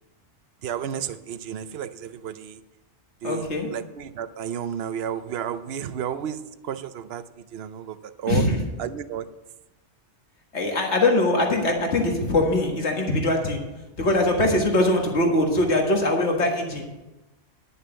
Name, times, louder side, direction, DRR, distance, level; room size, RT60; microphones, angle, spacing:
voice 1, 0.6-2.6 3.2-8.4 8.8-9.3, right 9 dB, 65° right, 12 dB, 0.9 m, -32 dB
voice 2, 3.2-3.7 8.3-8.6 10.5-13.6 14.0-16.8, left 1 dB, 75° left, 1 dB, 2.1 m, -22 dB
10.5 x 6.8 x 7.9 m, 1.0 s
omnidirectional pair, 1.2 m